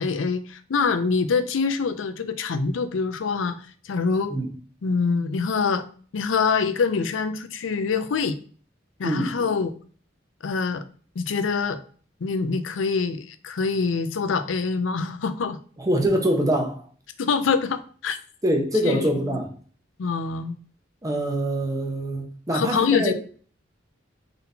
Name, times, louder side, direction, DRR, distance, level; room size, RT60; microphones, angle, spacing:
voice 1, 0.0-4.4 4.8-5.9 6.1-8.4 9.0-9.7 10.4-10.8 11.2-11.8 12.2-15.6 17.2-18.2 18.8-19.4 20.0-20.6 22.5-23.1, left 5 dB, 75° left, 0.5 m, -25 dB
voice 2, 15.8-16.8 18.4-19.5 21.0-23.1, right 1 dB, 20° right, 0.9 m, -24 dB
3.9 x 3.7 x 2.7 m
head